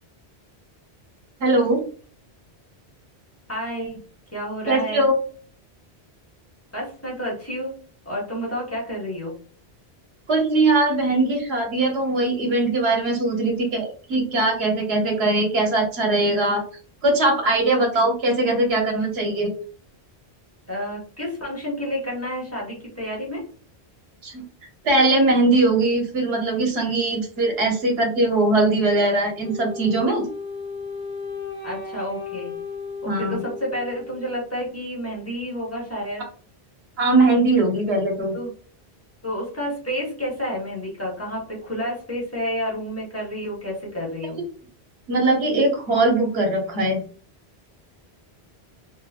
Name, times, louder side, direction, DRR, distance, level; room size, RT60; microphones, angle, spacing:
voice 1, 1.4-1.8 4.7-5.2 10.3-16.6 17.0-19.5 24.2-24.4 24.8-30.2 33.1-33.4 37.0-38.3 45.1-47.0, right 2 dB, 70° right, 1 dB, 1.2 m, -20 dB
voice 2, 3.5-4.0 4.3-5.0 6.7-7.7 8.0-9.3 20.7-23.4 31.6-32.5 33.0-36.2 38.3-38.5 39.2-44.4, equal, 15° left, -4 dB, 1.2 m, -30 dB
Wind instrument woodwind instrument, 29.4-34.5, left 4 dB, 80° left, 1.0 m, -35 dB
3.0 x 2.6 x 2.4 m, 0.43 s
omnidirectional pair, 1.1 m